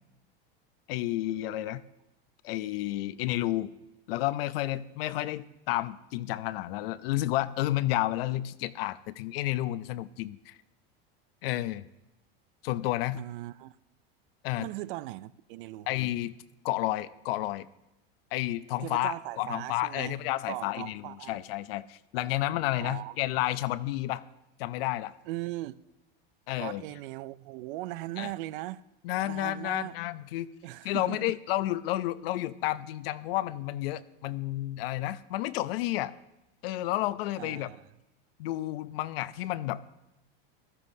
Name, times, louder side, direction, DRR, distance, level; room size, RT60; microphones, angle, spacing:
voice 1, 0.9-1.8 2.4-3.7 4.1-10.6 11.4-11.9 12.6-13.2 14.4-14.7 15.9-16.3 16.6-17.7 18.3-24.2 24.6-25.1 26.5-26.8 28.2-28.3 29.0-30.5 30.8-36.1 36.6-37.7 38.4-39.8, left 15 dB, 70° left, 0.6 m, -31 dB
voice 2, 13.1-13.8 14.6-15.9 18.8-20.2 20.5-21.4 22.8-23.2 25.3-25.8 26.6-28.8 29.2-29.9 30.6-31.3 37.3-37.9, right 17 dB, 60° right, 0.5 m, -39 dB
15.5 x 13.0 x 2.7 m
supercardioid pair, 135°, 30 cm